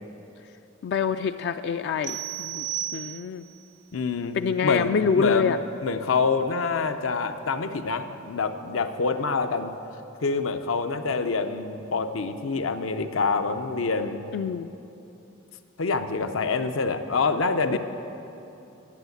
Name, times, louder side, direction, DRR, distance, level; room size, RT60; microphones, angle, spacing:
voice 1, 0.8-2.7 2.9-3.4 4.4-5.6 14.3-14.7 17.7-17.8, left 6 dB, 60° left, 9 dB, 0.3 m, -26 dB
sound 1, 2.0-3.6, right 12 dB, 65° right, 0.6 m, -33 dB
voice 2, 3.9-5.5 5.8-9.7 10.2-14.2 15.8-17.8, left 4 dB, 80° left, 8 dB, 0.6 m, -26 dB
11.0 x 7.8 x 8.0 m, 2.9 s
head